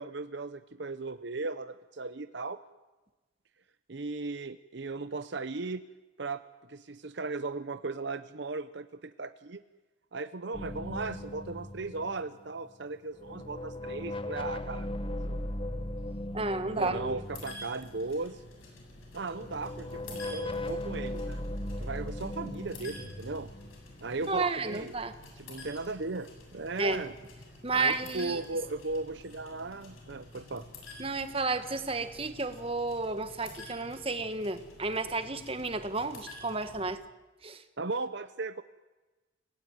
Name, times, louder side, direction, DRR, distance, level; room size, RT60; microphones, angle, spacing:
voice 1, 0.0-2.6 3.9-5.8 6.2-6.4 6.7-9.6 10.1-15.4 16.6-18.4 19.1-21.4 21.8-23.5 24.0-24.9 25.4-27.1 27.7-30.7 37.8-38.6, right 3 dB, 60° right, 12 dB, 0.7 m, -37 dB
sound 1, 10.5-12.8 13.1-18.3 19.2-24.7, left 1 dB, 25° left, 1.1 m, -38 dB
voice 2, 16.3-17.1 24.3-25.1 26.8-27.0 27.6-28.4 31.0-37.0 37.4-37.6, right 3 dB, 25° right, 10 dB, 1.5 m, -32 dB
sound 2, 17.2-36.9, left 2 dB, 90° left, 7.8 m, -50 dB
29.0 x 17.5 x 9.2 m, 1.2 s
head